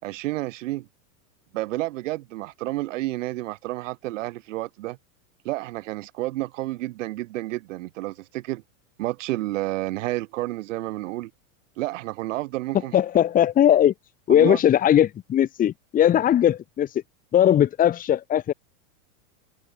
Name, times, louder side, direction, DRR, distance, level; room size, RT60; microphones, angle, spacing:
voice 1, 0.0-0.9 1.5-5.0 5.4-8.6 9.0-11.3 11.8-12.9 14.3-14.6, right 18 dB, 55° right, 6.4 m, -30 dB
voice 2, 12.9-13.9 14.3-16.9 17.3-18.5, left 10 dB, 20° left, 2.3 m, -19 dB
supercardioid pair, 160°, 44 cm